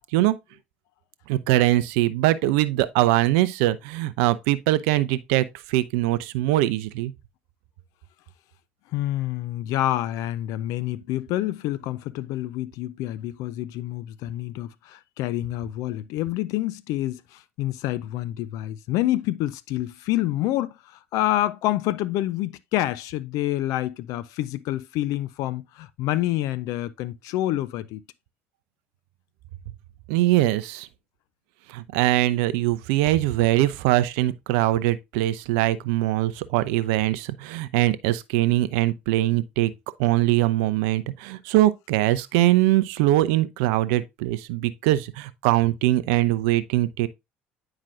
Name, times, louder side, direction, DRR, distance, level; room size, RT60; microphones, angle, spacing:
voice 1, 1.3-7.1 30.1-30.9 31.7-39.7 40.0-47.1, right 15 dB, 70° right, 0.5 m, -22 dB
voice 2, 8.9-28.0, left 14 dB, 60° left, 0.4 m, -27 dB
8.9 x 4.8 x 2.5 m
hypercardioid pair, 60°, 7 cm